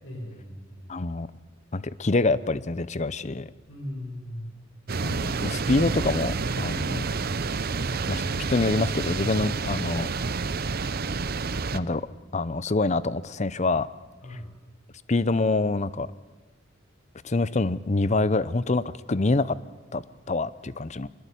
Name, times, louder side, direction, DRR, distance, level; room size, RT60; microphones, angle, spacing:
voice 1, 0.0-0.9 3.7-4.5 14.2-14.5, left 1 dB, 80° left, 2 dB, 6.7 m, -38 dB
voice 2, 0.9-1.3 1.7-3.5 5.0-7.1 8.1-8.2 8.5-10.1 11.7-12.1 12.3-13.9 15.1-16.1 17.2-19.6 19.9-21.1, left 3 dB, 35° left, 17 dB, 0.7 m, -26 dB
sound 1, 4.9-11.8, right 4 dB, 50° right, 0.8 m, -29 dB
24.0 x 21.5 x 8.4 m, 1.2 s
head